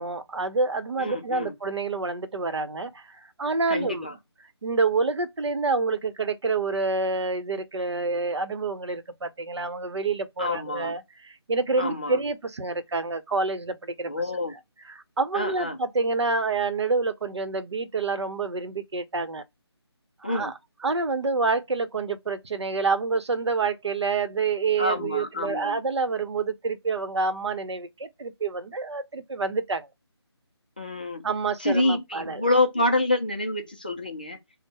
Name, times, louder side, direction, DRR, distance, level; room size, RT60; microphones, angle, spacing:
voice 1, 0.0-4.1 4.6-14.1 14.5-14.6 14.9-19.4 20.2-20.5 20.8-29.9 31.2-32.4, right 4 dB, 75° right, 0.8 m, -27 dB
voice 2, 1.0-1.5 3.7-4.1 10.4-10.9 11.8-12.2 14.1-14.5 15.3-15.8 20.2-20.5 24.8-25.8 30.8-31.2 31.6-34.4, left 2 dB, 20° left, 0.4 m, -27 dB
3.6 x 2.0 x 4.0 m
figure-of-eight pair, 170°, 14 cm